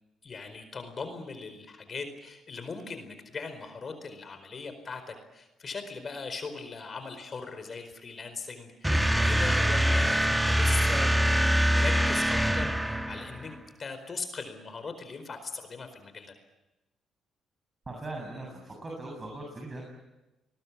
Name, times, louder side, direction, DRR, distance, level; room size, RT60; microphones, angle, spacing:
voice 1, 0.2-11.1 11.4-16.3, left 4 dB, 40° left, 8 dB, 4.6 m, -40 dB
sound 1, 8.8-13.5, equal, 5° right, 1.5 m, -24 dB
voice 2, 17.9-19.8, right 2 dB, 25° right, 1 dB, 7.6 m, -39 dB
27.0 x 21.0 x 8.6 m, 1.0 s
cardioid pair, 90°, 0 cm